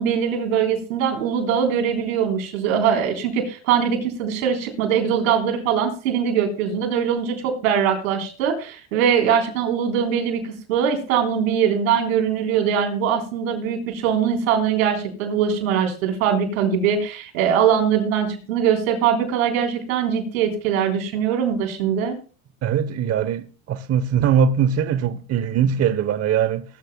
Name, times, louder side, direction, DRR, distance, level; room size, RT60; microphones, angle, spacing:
voice 1, 0.0-22.2, right 8 dB, 85° right, 3.7 m, -22 dB
voice 2, 22.6-26.6, right 8 dB, 40° right, 0.9 m, -21 dB
19.5 x 13.5 x 2.2 m
supercardioid pair, 95°, 40 cm